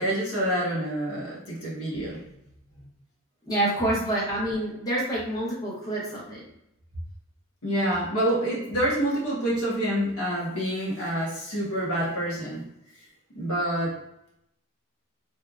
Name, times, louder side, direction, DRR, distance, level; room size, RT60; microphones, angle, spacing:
voice 1, 0.0-2.2 7.6-12.6 13.3-14.0, right 1 dB, 90° left, -5 dB, 1.3 m, -27 dB
voice 2, 3.5-6.4, right 1 dB, 20° left, -7 dB, 1.0 m, -27 dB
3.2 x 2.7 x 2.4 m, 0.83 s
head